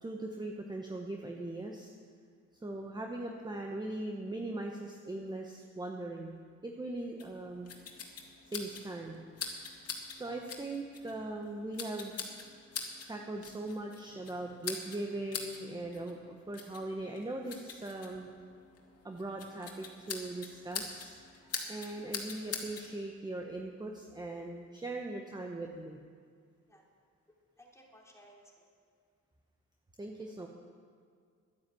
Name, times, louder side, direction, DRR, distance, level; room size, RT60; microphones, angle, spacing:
voice 1, 0.0-1.9 2.6-7.7 8.5-9.3 10.1-12.1 13.1-18.3 19.0-21.2 21.7-26.0 30.0-30.5, right 2 dB, 15° right, 1 dB, 1.1 m, -40 dB
sound 1, 7.2-22.9, left 5 dB, 55° left, 2.0 m, -44 dB
voice 2, 27.6-28.7 30.3-30.5, equal, 10° left, -2 dB, 3.1 m, -59 dB
10.5 x 10.0 x 7.8 m, 2.1 s
cardioid pair, 90°, 30 cm